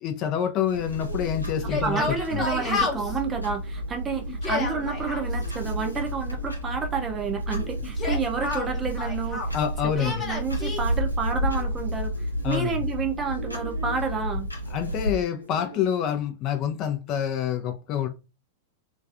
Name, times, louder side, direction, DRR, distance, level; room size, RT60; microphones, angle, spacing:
voice 1, 0.0-2.4 9.5-10.2 12.4-12.8 14.7-18.1, left 9 dB, 35° left, 0.4 m, -27 dB
Clock, 0.7-15.2, equal, 90° left, 0.6 m, -31 dB
sound 1, 0.7-16.2, right 1 dB, 85° right, 0.5 m, -46 dB
Yell, 1.7-3.2 4.3-5.2 7.8-9.6 10.0-10.8, left 3 dB, 20° left, 0.8 m, -30 dB
voice 2, 1.8-9.4 10.0-12.1 12.4-14.5, right 6 dB, 20° right, 0.5 m, -30 dB
2.4 x 2.3 x 2.4 m
figure-of-eight pair, 95°, 0 cm